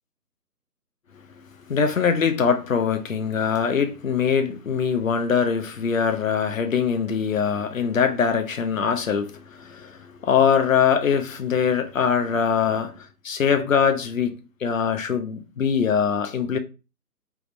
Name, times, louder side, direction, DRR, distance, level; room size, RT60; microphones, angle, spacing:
voice 1, 1.7-13.0 13.2-16.6, left 6 dB, 55° left, 0.5 m, -22 dB
3.4 x 2.5 x 3.1 m
figure-of-eight pair, 175°, 48 cm